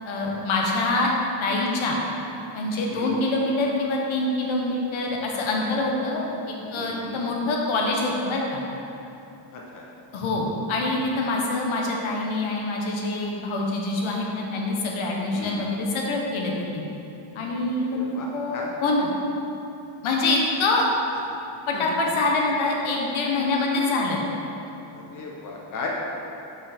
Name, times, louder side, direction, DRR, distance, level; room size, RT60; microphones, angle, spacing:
voice 1, 0.0-1.1 1.4-2.0 2.5-8.6 10.1-16.8 17.3-18.0 18.3-19.1 20.0-20.8 21.7-24.2, left 2 dB, 70° left, -1 dB, 1.1 m, -25 dB
voice 2, 6.7-7.2 9.5-9.8 15.3-15.7 17.9-18.8 21.7-21.9 24.9-25.9, left 4 dB, 40° left, -2 dB, 0.7 m, -36 dB
5.7 x 5.1 x 4.2 m, 2.9 s
cardioid pair, 160°, 49 cm